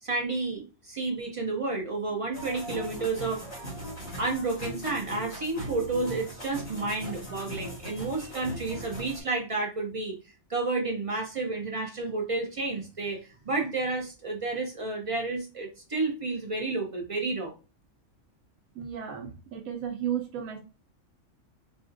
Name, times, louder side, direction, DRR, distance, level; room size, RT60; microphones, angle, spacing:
voice 1, 0.0-3.4 4.2-10.1 10.5-17.6, right 3 dB, 45° right, 1 dB, 0.4 m, -31 dB
sound 1, 2.3-9.2, right 1 dB, 55° left, 2.2 m, -39 dB
voice 2, 18.8-20.6, right 9 dB, 90° right, 2 dB, 1.0 m, -34 dB
4.0 x 2.5 x 2.5 m, 0.32 s
omnidirectional pair, 1.4 m